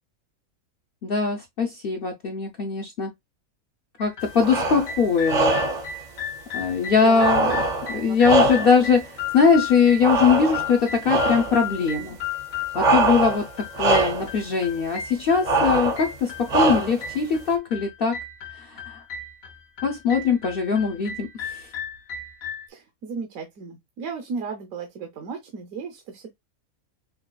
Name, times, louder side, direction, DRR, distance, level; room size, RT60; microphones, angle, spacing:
voice 1, 1.0-3.1 4.0-5.6 6.5-7.4 7.9-12.2 12.7-13.5 13.8-18.2 18.5-19.0 19.8-21.7, left 5 dB, 55° left, 0.6 m, -21 dB
sound 1, 4.0-22.7, left 7 dB, 75° left, 1.3 m, -35 dB
sound 2, 4.4-4.9 5.3-5.9 7.1-8.9 10.0-10.8 11.1-11.6 12.7-13.5 13.7-14.3 15.4-16.1 16.5-17.1, right 2 dB, 45° right, 0.6 m, -22 dB
voice 2, 7.0-7.6 8.0-8.5 22.7-26.3, right 5 dB, 75° right, 1.1 m, -35 dB
5.6 x 2.3 x 2.2 m
omnidirectional pair, 1.5 m